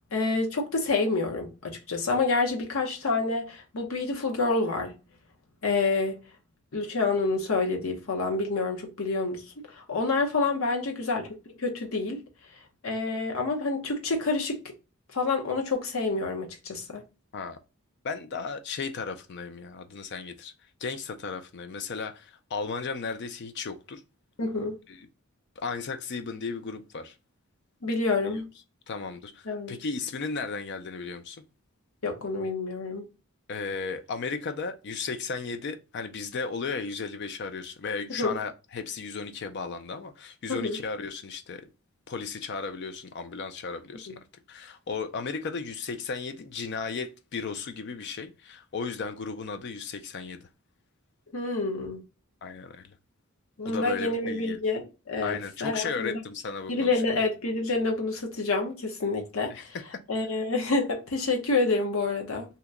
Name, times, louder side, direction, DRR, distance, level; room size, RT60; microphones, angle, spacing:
voice 1, 0.1-5.0 5.6-6.2 6.7-11.3 11.6-12.2 12.8-14.6 15.1-17.0 24.4-24.8 27.8-28.5 29.5-29.8 32.0-33.1 38.2-38.4 40.5-40.8 51.3-52.0 53.6-56.2 56.7-59.8 60.1-62.5, left 3 dB, 70° left, 0.8 m, -28 dB
voice 2, 18.0-20.5 20.8-24.0 24.9-25.0 25.6-27.1 28.3-28.4 28.9-31.4 33.5-41.7 42.1-44.2 44.5-50.4 52.4-52.8 53.7-54.6 55.2-57.0 59.5-59.6, left 4 dB, 50° left, 0.4 m, -35 dB
2.8 x 2.2 x 3.5 m
head